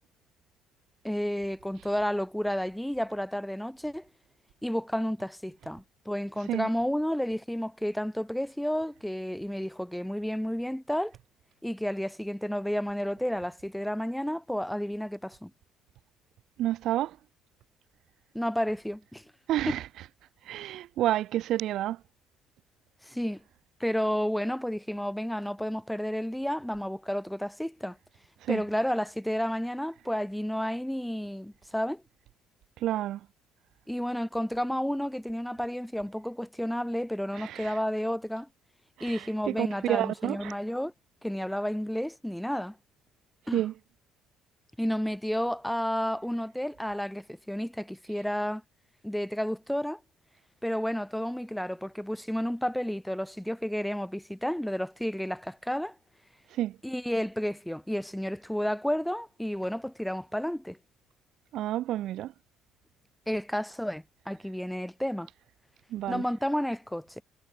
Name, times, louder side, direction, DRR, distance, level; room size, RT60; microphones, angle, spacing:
voice 1, 1.0-4.1 4.6-11.1 11.6-15.5 18.3-19.2 19.7-19.8 23.0-23.4 23.8-28.0 28.5-32.0 33.9-38.5 39.0-40.9 41.2-42.8 43.5-43.6 44.8-48.6 49.0-50.0 50.6-56.0 56.8-60.8 63.3-65.3 66.1-67.2, equal, ahead, 1.8 m, -31 dB
voice 2, 16.6-17.2 19.5-19.8 20.4-22.0 28.4-28.6 32.8-33.2 37.4-37.8 39.0-40.5 43.5-43.7 56.5-56.8 61.5-62.3 65.9-66.2, right 13 dB, 60° right, 0.7 m, -29 dB
cardioid pair, 145°, 0 cm